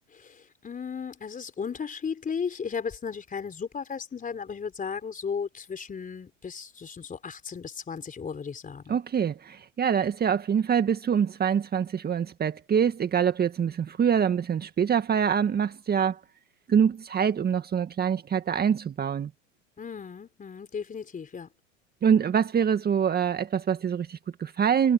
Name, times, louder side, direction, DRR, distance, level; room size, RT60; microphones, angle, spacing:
voice 1, 0.1-8.9 19.8-21.5, left 6 dB, 20° left, 4.1 m, -35 dB
voice 2, 8.9-16.2 16.7-19.3 22.0-24.9, right 7 dB, 25° right, 1.9 m, -25 dB
hypercardioid pair, 95°, 39 cm